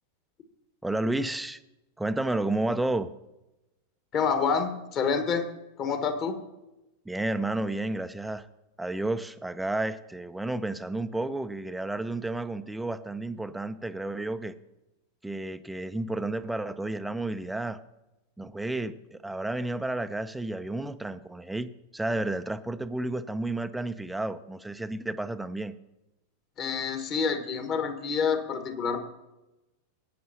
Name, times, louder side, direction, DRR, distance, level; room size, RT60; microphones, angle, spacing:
voice 1, 0.8-1.6 2.0-3.1 7.1-8.5 8.8-14.5 15.2-17.8 18.4-25.7, right 2 dB, 5° right, 12 dB, 0.5 m, -31 dB
voice 2, 4.1-5.4 5.8-6.4 26.6-29.0, left 6 dB, 35° left, 7 dB, 1.5 m, -27 dB
18.0 x 9.4 x 2.9 m, 0.97 s
figure-of-eight pair, 90°, 0 cm